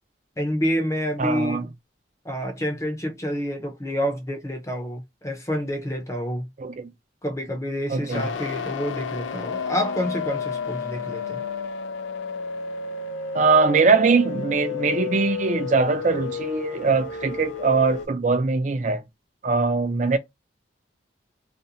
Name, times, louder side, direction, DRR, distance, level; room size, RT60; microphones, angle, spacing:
voice 1, 0.4-1.7 2.2-6.5 7.2-11.4, equal, 15° left, 0.6 m, -28 dB
voice 2, 1.2-1.7 6.6-6.9 7.9-8.3 13.3-19.0 19.4-20.2, right 4 dB, 40° right, 0.4 m, -21 dB
sound 1, 8.1-18.1, left 6 dB, 90° left, 0.4 m, -31 dB
2.5 x 2.1 x 2.7 m
head